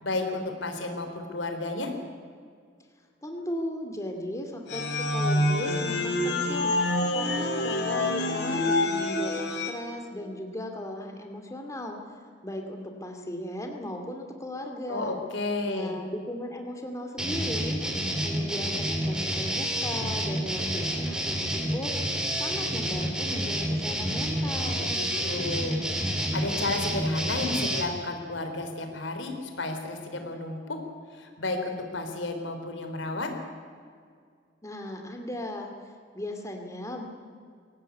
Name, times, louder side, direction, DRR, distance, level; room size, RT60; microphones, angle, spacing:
voice 1, 0.0-1.9 14.9-16.0 24.8-25.8 26.3-30.8 31.1-33.3, left 2 dB, 80° left, 5 dB, 3.7 m, -32 dB
voice 2, 3.2-6.8 7.1-12.0 12.4-15.2 15.6-21.9 22.4-25.1 34.6-35.7 36.1-37.0, left 1 dB, 15° left, 3 dB, 2.5 m, -37 dB
sound 1, 4.7-9.7, left 1 dB, 65° left, 3.3 m, -26 dB
sound 2, 17.2-27.9, equal, 5° right, 3.1 m, -29 dB
23.0 x 17.5 x 9.5 m, 2.1 s
head